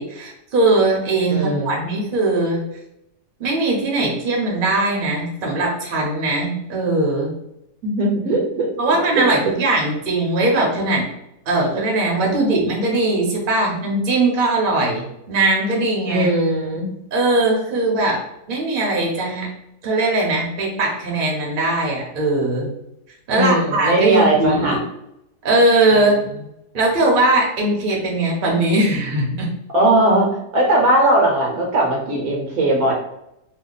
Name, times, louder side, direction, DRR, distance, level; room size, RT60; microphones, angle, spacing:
voice 1, 0.0-2.6 3.4-7.3 8.8-11.1 11.5-16.3 17.1-18.2 18.5-19.5 19.8-22.7 23.3-24.8 25.4-26.2 26.7-29.5, right 2 dB, 40° right, -2 dB, 0.8 m, -20 dB
voice 2, 1.3-1.8 7.8-8.7 9.1-9.5 16.1-16.9 23.3-24.8 25.9-26.0 29.7-32.9, right 1 dB, 70° right, -1 dB, 1.1 m, -19 dB
2.8 x 2.4 x 3.8 m, 0.83 s
omnidirectional pair, 1.7 m